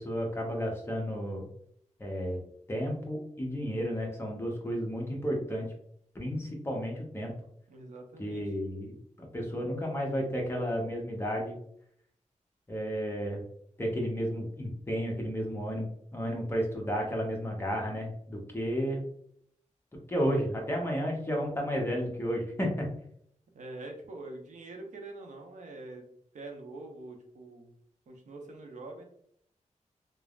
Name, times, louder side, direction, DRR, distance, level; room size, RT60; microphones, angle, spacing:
voice 1, 0.0-1.5 2.0-2.4 2.7-5.7 6.1-7.3 8.2-11.5 12.7-13.4 13.8-19.0 20.1-22.9, equal, 20° left, 0 dB, 0.7 m, -32 dB
voice 2, 7.7-8.5 23.5-27.7 28.1-29.0, right 2 dB, 75° right, 3 dB, 0.6 m, -45 dB
3.3 x 2.0 x 2.4 m, 0.68 s
wide cardioid pair, 125°, 13 cm